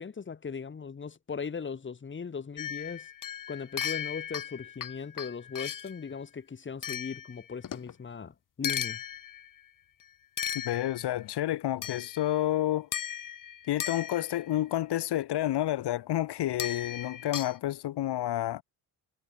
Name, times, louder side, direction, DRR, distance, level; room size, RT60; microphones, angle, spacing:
voice 1, 0.0-3.1 3.5-9.0, left 5 dB, 30° left, 2.7 m, -38 dB
sound 1, 2.6-6.0 6.8-7.9 8.6-9.6 10.4-11.2 11.8-12.4 12.9-14.6 16.6-17.6, left 9 dB, 50° left, 3.5 m, -37 dB
voice 2, 10.5-12.9 13.7-18.6, left 13 dB, 80° left, 3.0 m, -30 dB
cardioid pair, 135°, 39 cm